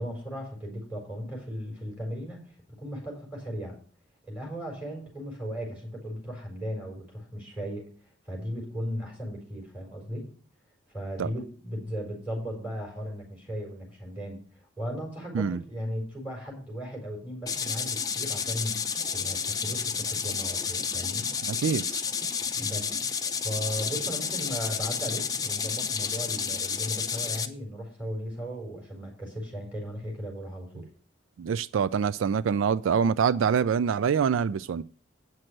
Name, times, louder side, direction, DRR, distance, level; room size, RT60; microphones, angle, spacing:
voice 1, 0.0-3.8 4.3-7.8 8.3-10.3 10.9-14.4 14.8-21.3 22.6-30.9, equal, 5° right, 4.2 m, -36 dB
sound 1, 17.5-27.5, left 6 dB, 20° left, 0.6 m, -31 dB
voice 2, 21.4-22.0 31.4-34.8, right 7 dB, 85° right, 0.3 m, -25 dB
8.8 x 6.1 x 6.4 m
head